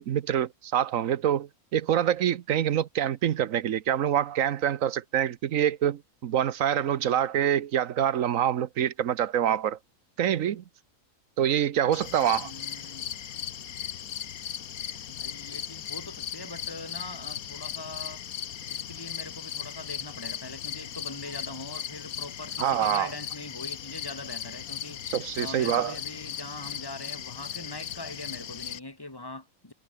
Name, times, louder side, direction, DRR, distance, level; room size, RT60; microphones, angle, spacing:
voice 1, 0.0-9.8 10.2-10.6 11.4-12.5 22.6-23.1 25.1-25.9, right 10 dB, 70° right, 1.2 m, -26 dB
sound 1, 11.9-28.8, left 9 dB, 80° left, 1.5 m, -37 dB
voice 2, 12.4-13.1 15.1-18.2 18.7-25.0 25.4-29.7, left 2 dB, 15° left, 2.7 m, -42 dB
omnidirectional pair, 1.5 m